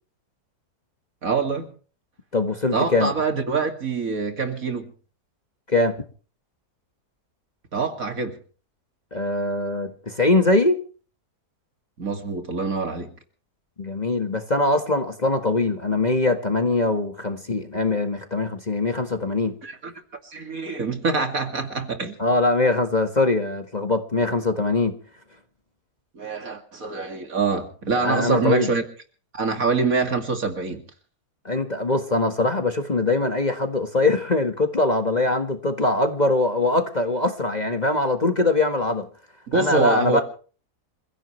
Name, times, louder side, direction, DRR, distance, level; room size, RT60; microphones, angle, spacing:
voice 1, 1.2-1.7 2.7-4.9 7.7-8.4 12.0-13.1 19.6-19.9 20.2-22.2 26.1-28.8 29.3-30.8 39.5-40.2, right 4 dB, 55° right, 2.8 m, -25 dB
voice 2, 2.3-3.1 5.7-5.9 9.1-10.8 13.8-19.6 22.2-25.0 28.0-28.7 31.5-39.1 39.5-40.2, left 2 dB, 25° left, 1.6 m, -22 dB
28.0 x 16.0 x 3.2 m
omnidirectional pair, 1.7 m